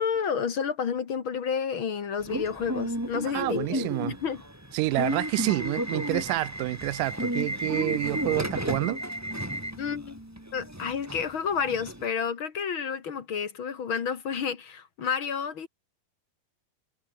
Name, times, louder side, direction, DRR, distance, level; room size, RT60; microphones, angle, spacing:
voice 1, 0.0-4.4 9.8-10.2 10.5-15.7, left 6 dB, 45° left, 2.0 m, -30 dB
Subway metro underground / Alarm, 2.2-12.0, right 1 dB, 5° right, 3.3 m, -33 dB
voice 2, 3.3-4.2 4.7-9.0, right 18 dB, 85° right, 2.3 m, -28 dB
omnidirectional pair, 3.8 m